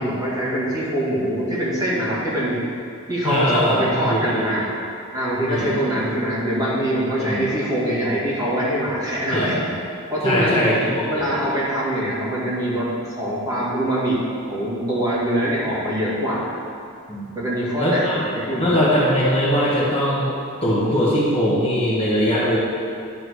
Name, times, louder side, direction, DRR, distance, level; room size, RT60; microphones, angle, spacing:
voice 1, 0.0-2.6 3.1-4.7 5.1-9.5 10.1-10.7 11.1-16.5 17.3-18.7, equal, 15° right, -9 dB, 2.1 m, -23 dB
voice 2, 3.2-4.5 5.5-6.0 7.2-7.4 9.3-9.7 10.2-11.4 17.1-17.3 17.8-18.2 18.6-20.3 20.6-22.6, equal, 25° left, -7 dB, 1.4 m, -21 dB
11.0 x 3.8 x 6.4 m, 2.6 s
head